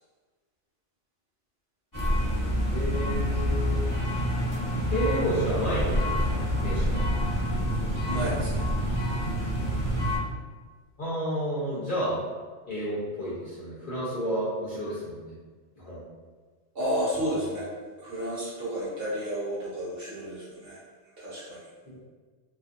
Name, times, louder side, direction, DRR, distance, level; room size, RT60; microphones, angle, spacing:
sound 1, 1.9-10.2, equal, 20° left, 0.7 m, -27 dB
voice 1, 2.7-3.9 4.9-7.0 11.0-12.2 12.7-15.4 15.8-16.0, equal, 55° left, -8 dB, 0.6 m, -31 dB
voice 2, 8.0-8.7 16.7-17.7 18.0-20.8 21.2-21.6, equal, 55° right, -7 dB, 0.8 m, -31 dB
2.4 x 2.4 x 2.5 m, 1.4 s
omnidirectional pair, 1.3 m